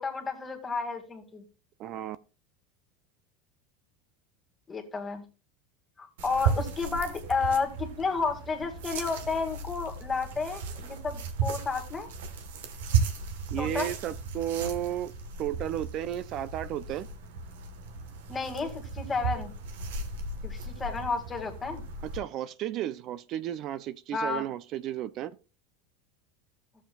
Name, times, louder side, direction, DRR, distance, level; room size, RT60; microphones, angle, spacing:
voice 1, 0.0-1.4 4.7-5.2 6.0-12.1 13.6-13.9 18.3-19.5 20.4-21.8 24.1-24.4, left 4 dB, 20° left, 2.1 m, -31 dB
voice 2, 1.8-2.2 13.5-15.1 15.4-17.1 22.0-25.3, right 11 dB, 50° right, 0.4 m, -33 dB
sound 1, 6.2-22.2, right 5 dB, 80° right, 1.2 m, -35 dB
13.5 x 7.2 x 2.3 m
hypercardioid pair, 100°, 0 cm